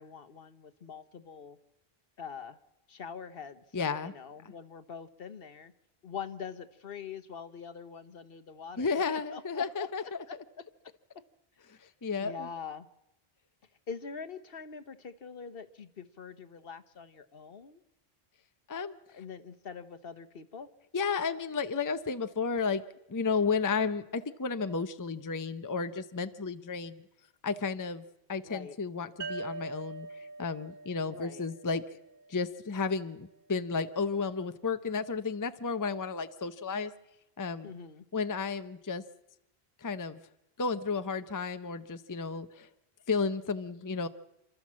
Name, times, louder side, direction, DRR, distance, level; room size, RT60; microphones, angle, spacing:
voice 1, 0.0-1.6 2.2-2.6 2.9-5.7 6.0-9.9 12.2-12.9 13.9-17.8 19.1-20.7 28.4-28.8 31.0-31.5 37.6-38.0, left 6 dB, 65° left, 11 dB, 1.2 m, -44 dB
voice 2, 3.7-4.1 8.8-10.2 11.7-12.5 18.7-19.0 20.9-22.8 23.1-27.0 27.4-28.0 28.3-30.1 30.4-32.0 32.3-36.9 37.4-37.7 38.1-39.0 39.8-40.2 40.6-42.7 43.1-44.1, left 5 dB, 20° left, 11 dB, 0.6 m, -32 dB
sound 1, 29.2-32.7, right 3 dB, 60° right, 1.3 m, -43 dB
28.0 x 13.0 x 7.4 m, 0.94 s
omnidirectional pair, 1.1 m